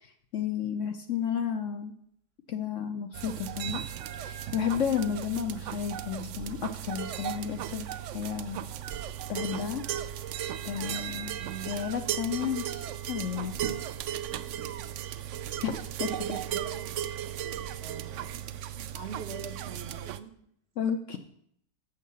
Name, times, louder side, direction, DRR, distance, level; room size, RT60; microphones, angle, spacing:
voice 1, 0.0-1.9 2.5-3.8 4.2-7.9 8.1-8.6 9.3-9.8 10.6-11.3 11.7-13.6 15.6-16.1 20.8-21.2, left 8 dB, 60° left, 8 dB, 0.9 m, -32 dB
sound 1, 3.1-20.2, right 10 dB, 70° right, 0.7 m, -36 dB
voice 2, 11.4-11.8 16.1-17.5 17.8-18.4 18.7-20.3, right 6 dB, 45° right, 5 dB, 1.0 m, -44 dB
7.2 x 6.6 x 6.9 m, 0.68 s
omnidirectional pair, 1.7 m